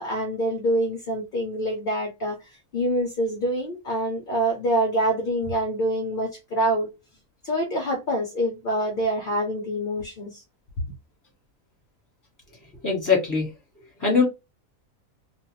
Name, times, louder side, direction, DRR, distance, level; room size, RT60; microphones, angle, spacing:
voice 1, 0.0-6.9 7.4-10.4, right 1 dB, 50° left, 0.7 m, -26 dB
voice 2, 12.8-13.5 14.0-14.2, left 5 dB, 15° left, 1.2 m, -21 dB
2.4 x 2.3 x 3.0 m
omnidirectional pair, 1.5 m